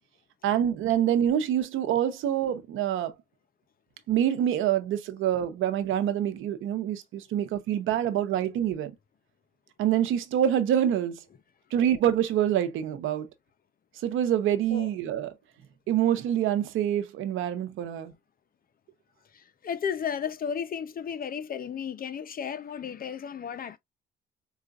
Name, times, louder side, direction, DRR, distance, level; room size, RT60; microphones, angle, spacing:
voice 1, 0.4-3.1 4.1-8.9 9.8-11.2 11.7-13.3 14.0-15.3 15.9-18.1, right 10 dB, 85° right, 0.8 m, -26 dB
voice 2, 19.3-23.8, left 7 dB, 45° left, 0.7 m, -34 dB
4.9 x 2.4 x 2.4 m
cardioid pair, 90°, 20 cm